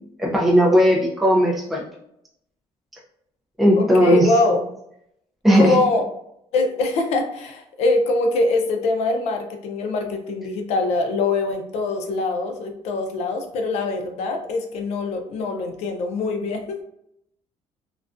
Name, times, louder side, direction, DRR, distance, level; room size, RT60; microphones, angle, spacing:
voice 1, 0.0-1.8 3.6-4.3 5.4-5.8, equal, ahead, -3 dB, 0.4 m, -17 dB
voice 2, 3.8-4.6 5.5-6.0 6.5-16.8, left 3 dB, 65° left, 4 dB, 0.4 m, -23 dB
2.3 x 2.2 x 2.4 m, 0.76 s
cardioid pair, 170°, 12 cm